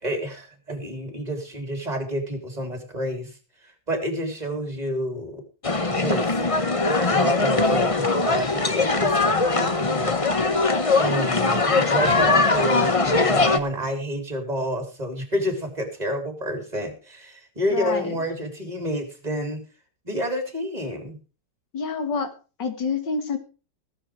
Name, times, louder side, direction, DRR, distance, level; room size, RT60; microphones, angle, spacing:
voice 1, 0.0-5.4 5.8-6.4 7.0-10.2 11.0-19.6 20.0-21.2, equal, 20° right, 5 dB, 3.9 m, -29 dB
sound 1, 5.6-13.6, left 3 dB, 20° left, 0.9 m, -21 dB
voice 2, 17.7-18.2 21.7-22.3 22.6-23.4, left 5 dB, 70° left, 8 dB, 2.8 m, -27 dB
18.0 x 8.6 x 4.8 m, 0.34 s
omnidirectional pair, 2.0 m